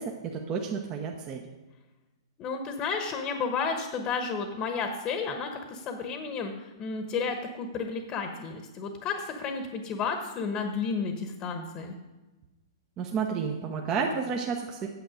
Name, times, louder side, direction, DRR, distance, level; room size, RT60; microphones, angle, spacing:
voice 1, 0.0-1.4 13.0-14.9, right 5 dB, 30° right, 1 dB, 1.0 m, -31 dB
voice 2, 2.4-12.0, left 5 dB, 35° left, 6 dB, 1.1 m, -32 dB
9.2 x 7.8 x 5.1 m, 1.1 s
hypercardioid pair, 115°, 2 cm